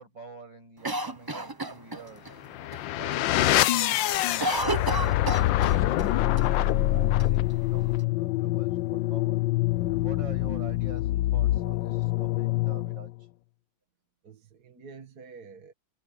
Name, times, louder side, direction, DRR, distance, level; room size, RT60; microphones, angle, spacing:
voice 1, 0.0-2.4 3.0-6.6 6.9-9.4 9.9-13.1, right 4 dB, 85° right, 8.1 m, -48 dB
Cough, 0.8-2.3 2.7-2.8 3.1-3.5 3.8-6.1 6.4-6.5 7.2-8.0, right 2 dB, 20° right, 0.7 m, -32 dB
sound 1, 2.4-13.1, left 15 dB, 90° left, 1.4 m, -25 dB
voice 2, 2.9-3.2 14.2-15.7, right 5 dB, 55° right, 2.2 m, -48 dB
omnidirectional pair, 2.0 m